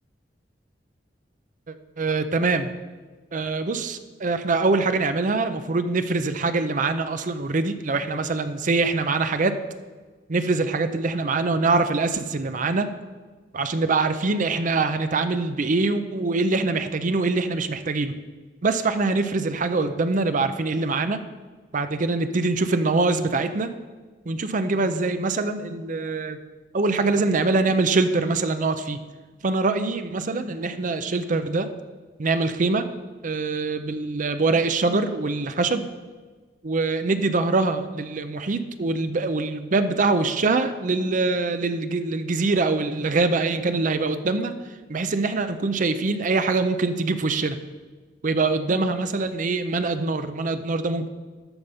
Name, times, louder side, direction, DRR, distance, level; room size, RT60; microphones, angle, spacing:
voice 1, 1.7-2.7 3.3-9.6 10.3-12.9 13.5-18.1 18.6-21.2 21.7-23.7 24.3-26.4 26.7-29.0 29.4-31.7 32.2-32.9 33.2-35.8 36.6-44.5 44.9-47.6 48.2-51.1, right 3 dB, 45° right, 10 dB, 0.6 m, -24 dB
13.0 x 5.2 x 5.5 m, 1.3 s
head